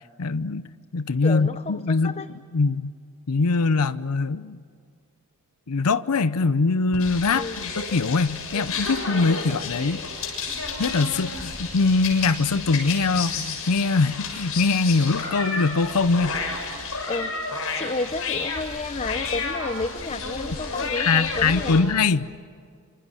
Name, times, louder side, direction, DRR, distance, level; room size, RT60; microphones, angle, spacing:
voice 1, 0.2-0.7 0.9-2.9 3.3-4.6 5.7-10.0 10.8-16.4 21.0-22.3, left 4 dB, 90° left, 15 dB, 0.7 m, -22 dB
voice 2, 1.2-2.3 7.3-7.7 8.5-8.6 9.0-9.2 17.1-21.8, left 3 dB, 30° left, 11 dB, 0.6 m, -31 dB
sound 1, 6.9-21.8, left 4 dB, 75° left, 6.8 m, -31 dB
27.0 x 25.0 x 7.7 m, 2.1 s
head